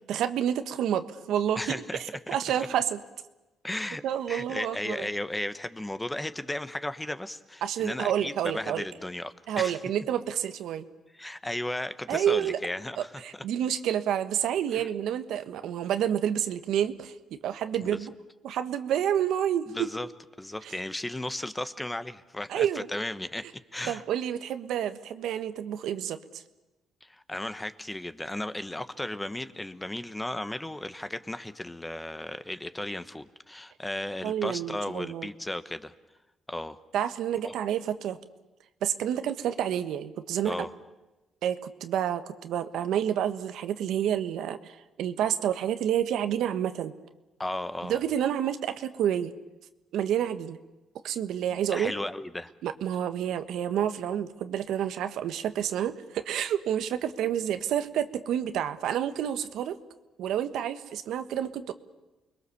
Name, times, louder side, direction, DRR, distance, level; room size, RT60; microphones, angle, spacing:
voice 1, 0.1-1.8 2.3-3.0 4.0-5.1 7.6-8.8 9.5-10.9 12.1-12.6 13.0-18.1 18.4-19.9 22.5-22.9 23.9-26.4 34.2-35.3 36.9-38.2 38.8-40.7 41.4-46.9 47.8-49.3 49.9-50.6 51.0-51.9 52.6-59.8 60.2-61.7, right 10 dB, 80° right, 10 dB, 1.3 m, -29 dB
voice 2, 1.6-2.0 2.3-2.7 3.6-4.0 4.3-9.8 11.1-13.1 14.7-14.9 19.7-20.1 20.4-23.5 23.7-24.0 27.0-35.9 36.5-36.8 37.4-37.5 40.4-40.7 47.4-48.0 51.7-52.5, left 1 dB, 10° left, 12 dB, 1.2 m, -35 dB
29.5 x 21.5 x 7.1 m, 1.1 s
cardioid pair, 90°, 0 cm